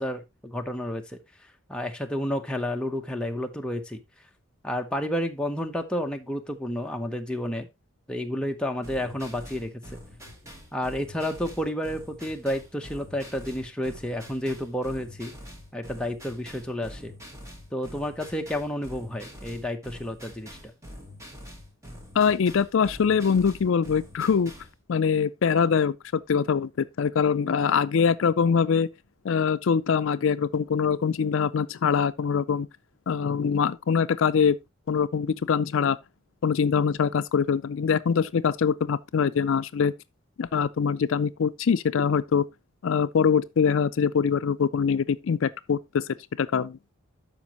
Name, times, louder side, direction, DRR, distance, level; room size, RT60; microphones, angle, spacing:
voice 1, 0.0-4.0 4.6-7.7 8.1-10.0 10.7-15.3 15.7-17.1 17.7-20.7, left 1 dB, 5° left, 0.8 m, -31 dB
sound 1, 8.8-24.8, equal, 15° right, 1.8 m, -45 dB
voice 2, 22.2-24.5 24.9-28.9 29.2-32.7 33.1-34.6 34.9-36.0 36.4-39.9 40.4-42.5 42.8-46.0 46.4-46.8, left 6 dB, 70° left, 0.4 m, -23 dB
12.5 x 5.2 x 2.9 m
head